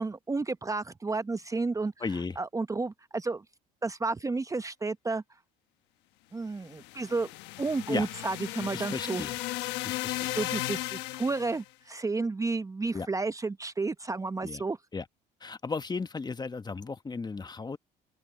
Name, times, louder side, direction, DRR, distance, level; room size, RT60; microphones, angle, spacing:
voice 1, 0.0-1.9 2.4-3.4 3.8-5.2 6.3-7.3 7.6-9.2 9.6-14.8, right 3 dB, 20° right, 0.8 m, -32 dB
voice 2, 2.0-2.4 7.9-8.1 8.7-9.4 9.8-10.6 12.9-13.1 14.4-14.6 14.9-15.0 15.4-17.8, left 4 dB, 25° left, 1.3 m, -35 dB
sound 1, 6.6-11.6, left 18 dB, 80° left, 1.2 m, -35 dB
open air
supercardioid pair, 80°, 17 cm